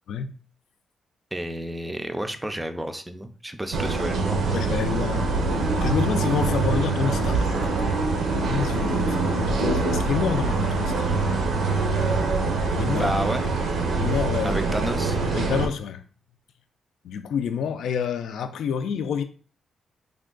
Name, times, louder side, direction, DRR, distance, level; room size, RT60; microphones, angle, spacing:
voice 1, 1.3-4.5 12.9-13.5 14.4-15.2, right 1 dB, 10° right, 0.4 m, -30 dB
sound 1, 3.7-15.7, right 3 dB, 80° right, 0.6 m, -24 dB
voice 2, 4.5-5.3 5.7-7.7 8.4-11.1 12.7-13.1 13.9-14.6 15.3-16.0 17.0-19.2, left 7 dB, 85° left, 0.4 m, -28 dB
3.4 x 2.2 x 3.7 m
cardioid pair, 110°, 0 cm